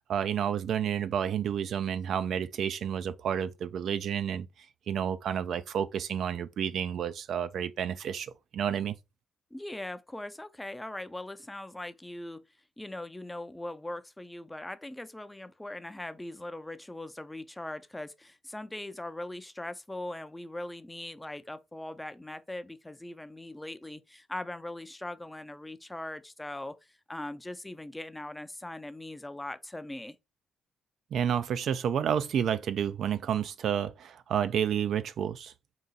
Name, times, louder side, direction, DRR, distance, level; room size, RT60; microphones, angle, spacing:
voice 1, 0.1-4.5 4.9-8.9 31.1-35.5, right 8 dB, 65° right, 0.3 m, -30 dB
voice 2, 9.5-12.4 12.8-30.2, left 1 dB, 10° left, 0.4 m, -40 dB
3.8 x 2.4 x 3.9 m
cardioid pair, 100°, 0 cm